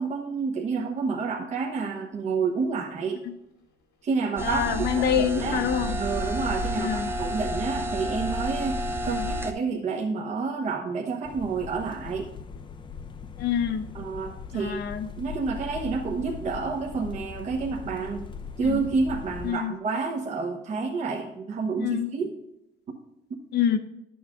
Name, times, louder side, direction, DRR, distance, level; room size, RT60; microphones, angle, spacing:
voice 1, 0.0-3.2 4.0-5.6 6.0-12.3 13.9-14.8 15.2-18.3 18.6-22.3, right 4 dB, 35° right, -1 dB, 1.1 m, -29 dB
sound 1, 2.2-2.3 2.7-2.9 3.6-4.0 5.4-9.7, right 3 dB, 85° left, 2.8 m, -48 dB
voice 2, 4.4-6.0 6.8-7.1 9.1-9.3 13.4-13.8 14.5-15.1 18.6-18.9 19.4-19.7 21.8-22.1 23.5-23.8, left 8 dB, 55° left, 9 dB, 0.8 m, -26 dB
sound 2, 4.4-9.5, equal, 10° right, 0.6 m, -30 dB
sound 3, 11.2-19.5, left 6 dB, 25° left, 0.6 m, -40 dB
11.0 x 7.2 x 3.6 m, 0.85 s
cardioid pair, 140°, 20 cm